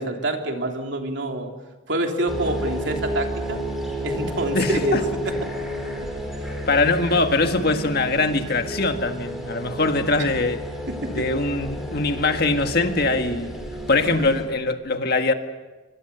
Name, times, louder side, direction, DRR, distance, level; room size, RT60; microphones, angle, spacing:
voice 1, 0.0-1.5 1.9-3.6 4.0-5.0 6.4-6.5 6.8-6.9 10.2-10.3 10.9-11.3, right 1 dB, 60° right, 3.3 m, -27 dB
sound 1, 2.3-14.4, equal, ahead, 5.3 m, -31 dB
voice 2, 4.5-5.0 6.7-10.6 11.1-13.5 13.9-15.3, left 3 dB, 50° left, 1.7 m, -22 dB
25.5 x 24.5 x 6.9 m
head